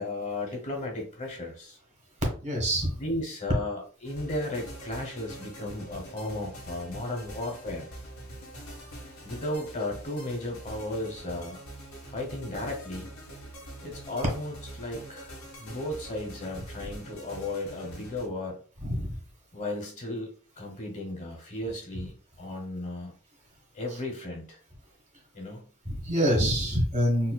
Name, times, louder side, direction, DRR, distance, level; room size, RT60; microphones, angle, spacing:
voice 1, 0.0-1.8 2.9-7.9 9.2-11.6 12.0-13.1 13.8-18.6 19.5-23.1 23.7-24.6 25.3-25.7, left 1 dB, 35° left, 1 dB, 1.0 m, -35 dB
voice 2, 2.4-2.9 18.8-19.1 25.9-27.3, equal, 35° right, 0 dB, 1.4 m, -26 dB
sound 1, 4.0-18.3, right 1 dB, 90° left, 1.5 m, -44 dB
4.2 x 2.6 x 2.3 m, 0.41 s
head